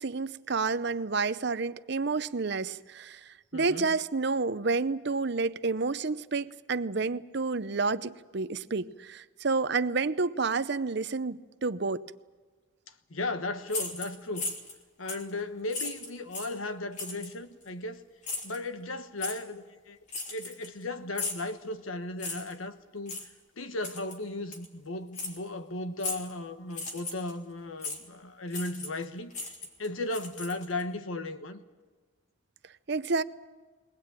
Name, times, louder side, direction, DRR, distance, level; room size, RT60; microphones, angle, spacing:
voice 1, 0.0-12.0 32.9-33.2, right 4 dB, 55° right, 0.7 m, -30 dB
voice 2, 3.5-3.9 13.1-14.5 15.0-18.0 18.4-20.0 20.3-23.2 23.6-29.5 29.8-31.6, left 2 dB, 75° left, 1.2 m, -36 dB
sound 1, 13.7-14.8 15.1-15.3 15.7-16.6 17.0-17.3 18.2-18.6 19.2-19.4 20.1-20.8 21.1-21.5 22.2-22.5 23.1-23.3 23.8-24.2 24.5-24.7 25.1-25.4 26.0-26.3 26.7-27.3 27.8-28.0 28.5-29.0 29.3-30.8, left 3 dB, 35° left, 3.1 m, -36 dB
22.0 x 19.0 x 8.9 m
head